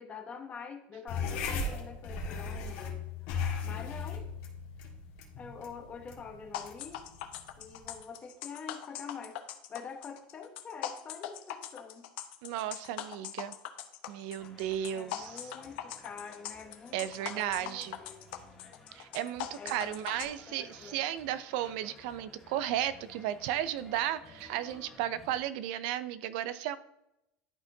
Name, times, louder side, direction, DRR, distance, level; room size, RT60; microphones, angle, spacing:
voice 1, 0.0-3.3 3.6-4.3 5.4-7.0 7.6-9.4 9.7-12.1 14.9-18.4 19.6-21.0, left 5 dB, 25° left, 6 dB, 0.9 m, -46 dB
sound 1, 1.1-7.9, left 4 dB, 65° left, 1.6 m, -37 dB
sound 2, 6.5-20.3, left 11 dB, 90° left, 0.7 m, -41 dB
voice 2, 12.4-13.6 14.1-15.4 16.9-18.0 18.9-26.8, right 12 dB, 75° right, 14 dB, 0.4 m, -34 dB
sound 3, 14.4-25.4, left 2 dB, 5° left, 1.5 m, -56 dB
11.5 x 4.3 x 2.7 m, 0.86 s
cardioid pair, 155°, 5 cm